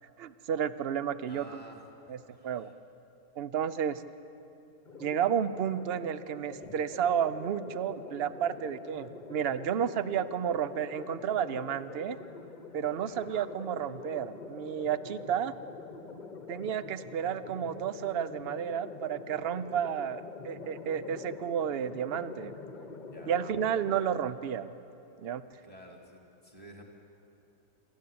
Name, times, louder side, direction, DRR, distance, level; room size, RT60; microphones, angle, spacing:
voice 1, 0.2-1.7 2.1-2.2 2.4-2.7 3.4-4.0 5.0-12.2 12.7-15.5 16.5-22.5 23.3-24.7 25.2-25.4, right 8 dB, 60° right, 14 dB, 0.6 m, -32 dB
voice 2, 1.3-2.7 6.6-6.7 13.0-13.3 19.5-19.6 23.1-23.4 25.6-26.8, equal, 15° right, 1 dB, 2.2 m, -52 dB
sound 1, 4.8-24.3, left 4 dB, 35° left, 1.1 m, -45 dB
27.5 x 13.5 x 8.6 m, 2.8 s
omnidirectional pair, 1.7 m